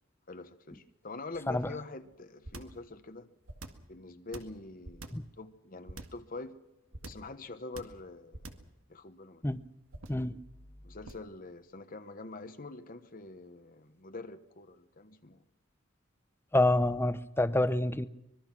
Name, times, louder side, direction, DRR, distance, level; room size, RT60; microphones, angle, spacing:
voice 1, 0.3-3.3 3.9-6.6 7.0-8.5 8.9-9.4 10.8-15.4, left 3 dB, 45° left, 1.1 m, -45 dB
sound 1, 2.4-2.8 3.4-3.9 4.3-5.3 5.9-6.3 6.9-7.3 7.7-8.0 8.3-8.7 9.9-10.3 11.0-11.3, right 2 dB, 85° right, 2.1 m, -45 dB
voice 2, 10.1-10.4 16.5-18.1, left 1 dB, 10° left, 0.8 m, -27 dB
25.0 x 22.0 x 6.1 m
head